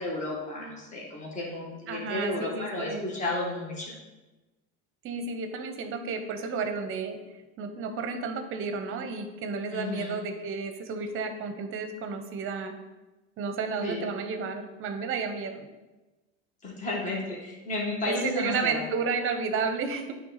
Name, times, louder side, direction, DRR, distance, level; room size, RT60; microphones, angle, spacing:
voice 1, 0.0-4.0 9.7-10.2 13.7-14.1 16.6-18.8, left 2 dB, 20° left, -3 dB, 1.6 m, -33 dB
voice 2, 1.9-3.0 5.0-7.2 7.6-12.7 13.4-15.7 18.1-20.1, right 4 dB, 40° right, 7 dB, 0.8 m, -32 dB
8.7 x 3.5 x 4.0 m, 1.1 s
supercardioid pair, 125°, 34 cm